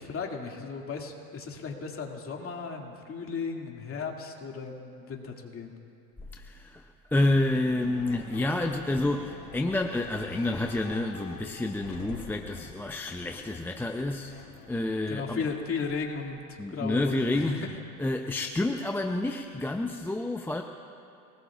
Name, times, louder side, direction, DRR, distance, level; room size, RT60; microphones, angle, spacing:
voice 1, 0.0-5.8 15.1-17.8, left 5 dB, 30° left, 1 dB, 2.5 m, -35 dB
voice 2, 6.3-14.3 14.7-15.4 16.6-17.6 18.0-20.6, left 2 dB, 5° left, 4 dB, 0.5 m, -29 dB
sound 1, 7.4-16.5, left 5 dB, 80° left, 3.9 m, -46 dB
30.0 x 19.5 x 2.5 m, 2.8 s
hypercardioid pair, 100°, 47 cm